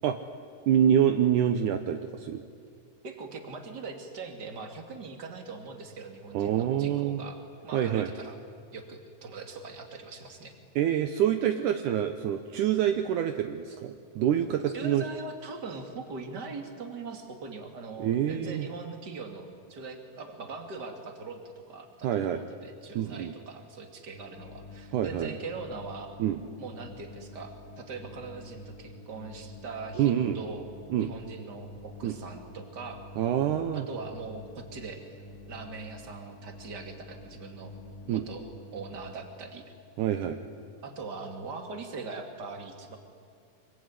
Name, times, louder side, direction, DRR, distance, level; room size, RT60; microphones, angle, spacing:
voice 1, 0.7-2.4 6.3-7.2 7.7-8.1 10.8-15.0 18.0-18.7 22.0-22.4 22.9-23.3 24.9-25.3 26.2-26.4 30.0-30.4 30.9-31.1 32.0-32.2 33.2-33.8 38.1-38.3 40.0-40.4, right 10 dB, 70° right, 7 dB, 2.3 m, -26 dB
voice 2, 3.0-8.4 8.7-10.5 14.7-26.1 26.6-30.7 31.0-33.0 33.7-35.2 35.5-37.7 38.0-38.4 38.7-39.6 40.8-43.0, right 4 dB, 30° right, 5 dB, 2.8 m, -41 dB
sound 1, 24.1-39.1, left 1 dB, 25° left, 2.9 m, -48 dB
25.0 x 23.5 x 9.8 m, 2.2 s
omnidirectional pair, 4.0 m